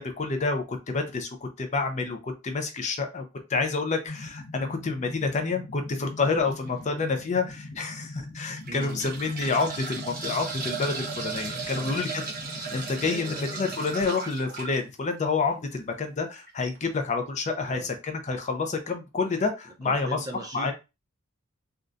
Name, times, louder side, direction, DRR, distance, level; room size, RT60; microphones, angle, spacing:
voice 1, 0.0-3.2 3.5-12.2 12.7-20.2 20.5-20.7, left 4 dB, 35° left, 0.5 m, -28 dB
sound 1, 4.1-14.1, left 2 dB, 90° left, 0.8 m, -42 dB
sound 2, 6.4-6.7 7.3-7.4 8.4-14.8 16.4-16.5 16.7-16.8, right 4 dB, 40° right, 1.0 m, -36 dB
voice 2, 8.7-9.1 11.6-12.0 13.0-13.6 17.6-18.0 19.8-20.7, right 1 dB, 15° right, 0.5 m, -39 dB
3.8 x 2.3 x 2.4 m
head